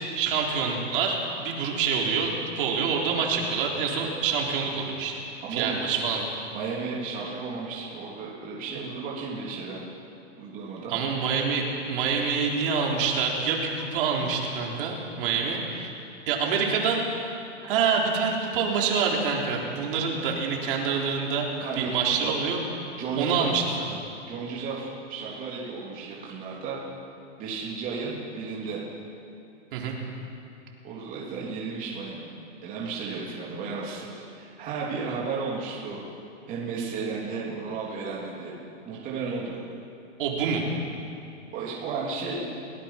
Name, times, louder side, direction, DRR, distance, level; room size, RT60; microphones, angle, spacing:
voice 1, 0.1-5.2 5.5-6.3 10.9-15.9 16.3-17.0 17.6-21.5 21.8-22.6 23.2-24.0 29.7-30.0 40.2-40.6, right 5 dB, 45° right, -1 dB, 3.9 m, -26 dB
voice 2, 5.5-5.8 6.5-9.8 10.4-11.0 21.6-22.3 23.0-23.5 24.3-26.8 27.4-28.8 30.8-32.3 32.6-36.0 36.5-38.5 38.8-39.6 41.5-42.4, right 4 dB, 20° right, -5 dB, 3.3 m, -33 dB
29.0 x 18.0 x 5.9 m, 2.8 s
hypercardioid pair, 160°, 37 cm